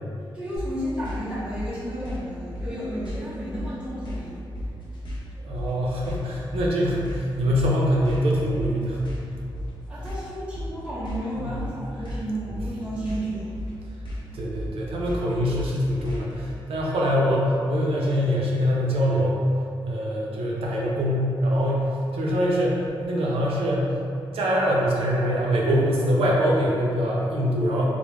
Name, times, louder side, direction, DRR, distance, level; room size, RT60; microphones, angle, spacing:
voice 1, 0.3-4.4 9.9-13.5, equal, 10° right, -12 dB, 0.7 m, -32 dB
sound 1, 0.6-16.4, equal, 60° left, 0.7 m, -35 dB
voice 2, 5.3-9.0 11.4-11.5 14.3-19.4 19.8-23.9 24.3-27.8, equal, 90° right, -3 dB, 0.5 m, -24 dB
2.2 x 2.1 x 3.0 m, 2.6 s
wide cardioid pair, 115°, 9 cm